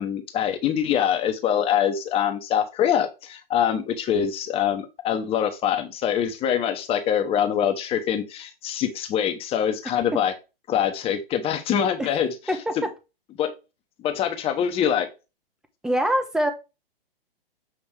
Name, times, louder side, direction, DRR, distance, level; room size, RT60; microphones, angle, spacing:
voice 1, 0.0-10.3 10.7-12.8 13.4-13.5 14.0-15.1, left 9 dB, 20° left, 1.1 m, -24 dB
voice 2, 12.5-12.9 15.8-16.5, equal, ahead, 0.8 m, -24 dB
7.5 x 3.3 x 4.8 m
figure-of-eight pair, 125°, 30 cm